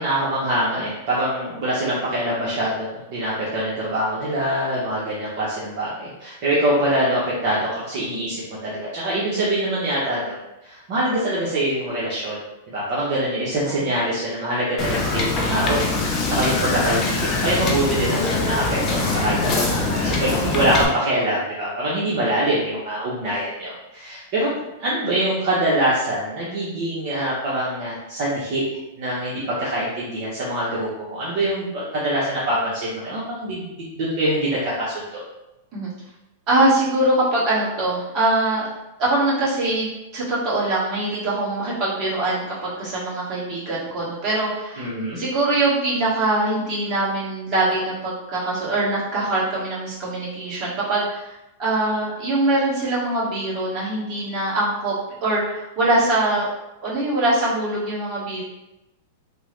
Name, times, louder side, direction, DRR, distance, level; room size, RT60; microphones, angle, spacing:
voice 1, 0.0-10.4 10.6-12.4 12.7-19.4 19.7-24.5 24.8-28.6 29.0-35.2 44.8-45.2, right 1 dB, 50° right, -7 dB, 0.8 m, -24 dB
Wind / Boat Water vehicle, 14.8-20.9, left 3 dB, 30° left, 0.5 m, -23 dB
voice 2, 36.5-38.7 39.0-44.9 45.1-54.9 55.2-56.5 56.8-58.4, right 2 dB, 30° right, -8 dB, 1.3 m, -23 dB
3.5 x 2.0 x 3.1 m, 0.94 s
supercardioid pair, 145°, 0 cm